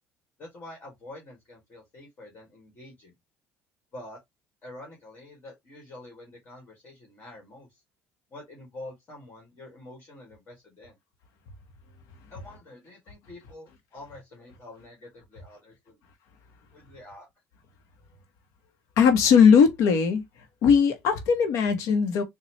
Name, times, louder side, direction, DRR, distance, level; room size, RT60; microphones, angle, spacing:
voice 1, 0.4-3.1 3.9-4.2 4.6-7.8 8.3-11.0 12.3-16.0 16.7-17.3, left 1 dB, 40° left, 1.7 m, -46 dB
voice 2, 19.0-20.2 20.6-22.2, left 6 dB, 75° left, 0.9 m, -19 dB
4.1 x 2.3 x 2.9 m
cardioid pair, 115°, 5 cm